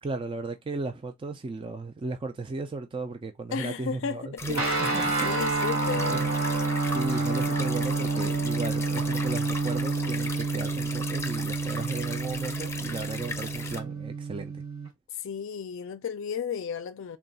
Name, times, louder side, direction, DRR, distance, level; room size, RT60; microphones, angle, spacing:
voice 1, 0.0-5.5 6.1-6.3 6.9-14.6, right 3 dB, 25° right, 0.3 m, -35 dB
voice 2, 3.5-4.8 5.2-6.2 15.1-17.2, left 7 dB, 65° left, 0.4 m, -34 dB
sound 1, 4.4-13.8, left 3 dB, 15° left, 0.6 m, -38 dB
sound 2, 4.5-14.9, right 3 dB, 70° right, 1.8 m, -29 dB
3.5 x 2.3 x 3.9 m
head